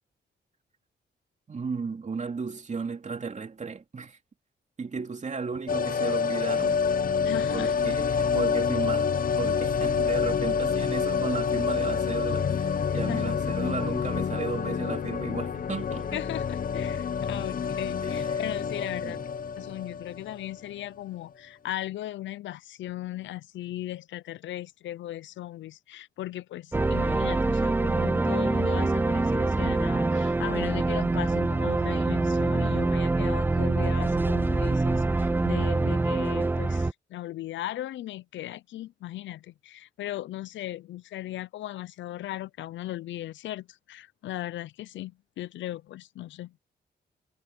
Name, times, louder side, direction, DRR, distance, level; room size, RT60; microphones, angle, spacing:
voice 1, 1.5-4.2 4.8-6.8 7.5-9.1 9.4-16.2 18.0-18.4 19.0-19.2, right 5 dB, 40° right, 2.8 m, -34 dB
sound 1, 5.7-20.6 20.8-20.9, left 6 dB, 50° left, 0.8 m, -27 dB
voice 2, 7.2-7.7 13.1-13.4 16.1-19.2 19.6-46.5, left 14 dB, 90° left, 0.6 m, -37 dB
sound 2, 26.7-36.9, right 2 dB, 10° right, 0.3 m, -25 dB
cardioid pair, 80°, 19 cm